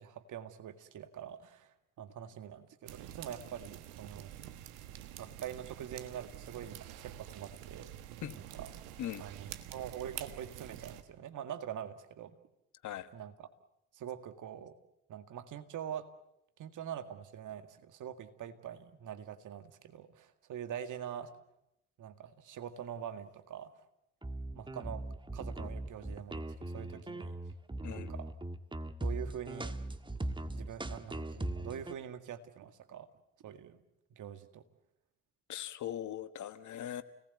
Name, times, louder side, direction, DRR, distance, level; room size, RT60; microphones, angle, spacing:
voice 1, 0.0-4.3 5.2-7.9 8.3-8.7 9.1-12.4 13.1-13.3 13.9-14.7 15.1-16.1 16.6-21.3 22.0-23.9 24.5-25.0 25.3-27.4 27.9-28.4 29.0-29.8 30.5-33.1 33.4-33.8 34.2-34.6, right 9 dB, 60° right, 9 dB, 2.0 m, -44 dB
sound 1, 2.9-11.0, right 12 dB, 75° right, 1.4 m, -48 dB
sound 2, 24.2-31.9, right 1 dB, 15° right, 1.6 m, -39 dB
voice 2, 35.5-37.0, left 11 dB, 55° left, 12 dB, 1.4 m, -40 dB
29.0 x 19.0 x 8.2 m, 0.86 s
hypercardioid pair, 50°, 35 cm